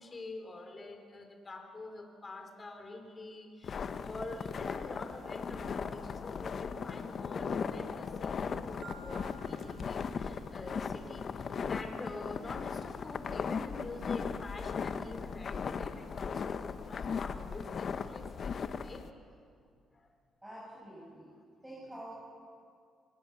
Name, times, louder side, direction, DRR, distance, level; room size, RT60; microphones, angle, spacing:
voice 1, 0.0-19.1 19.9-20.1, left 2 dB, 30° left, 4 dB, 4.0 m, -46 dB
sound 1, 3.6-19.1, left 6 dB, 50° left, 1.0 m, -38 dB
Marimba xylophone, 8.8-11.0, right 6 dB, 65° right, 2.5 m, -55 dB
voice 2, 20.4-21.3 21.6-22.3, right 1 dB, 10° right, -6 dB, 6.8 m, -47 dB
25.5 x 19.5 x 7.1 m, 2.2 s
cardioid pair, 90°, 0 cm